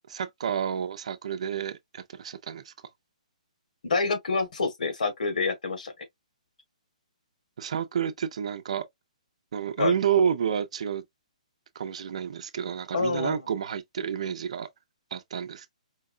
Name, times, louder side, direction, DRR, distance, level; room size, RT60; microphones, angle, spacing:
voice 1, 0.1-2.7 7.6-8.9 9.5-11.0 11.7-14.7 15.1-15.7, right 8 dB, 55° right, 0.6 m, -29 dB
voice 2, 3.8-6.0 9.8-9.9 12.9-13.4, left 4 dB, 80° left, 1.7 m, -27 dB
4.6 x 2.2 x 2.5 m
hypercardioid pair, 170°, 4 cm